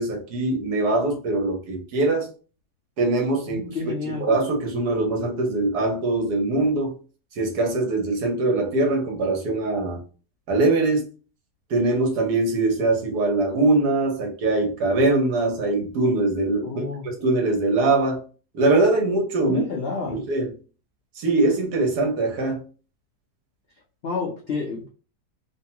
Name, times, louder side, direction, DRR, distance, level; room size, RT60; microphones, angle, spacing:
voice 1, 0.0-2.3 3.0-6.9 7.4-10.0 10.5-11.1 11.7-18.2 18.5-19.6 20.0-20.5 21.2-22.6, right 2 dB, 70° right, 3 dB, 1.3 m, -22 dB
voice 2, 3.5-4.3 16.6-17.1 19.4-20.2 24.0-24.9, left 4 dB, 85° left, -1 dB, 0.5 m, -29 dB
3.0 x 2.2 x 2.7 m, 0.37 s
omnidirectional pair, 1.8 m